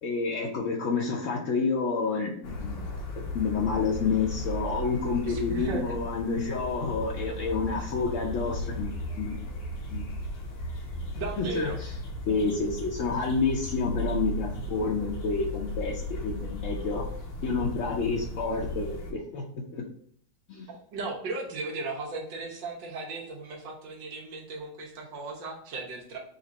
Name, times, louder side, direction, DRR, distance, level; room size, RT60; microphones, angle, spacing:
voice 1, 0.0-9.5 9.9-10.0 11.4-11.7 12.3-17.0 17.4-19.8 20.5-20.7, left 4 dB, 65° left, -2 dB, 0.8 m, -29 dB
sound 1, 2.4-19.1, left 1 dB, 85° left, 1.6 m, -36 dB
voice 2, 5.2-5.9 11.2-11.8 20.7-26.2, right 3 dB, 90° right, 0 dB, 1.7 m, -36 dB
4.1 x 2.5 x 4.0 m, 0.63 s
omnidirectional pair, 1.9 m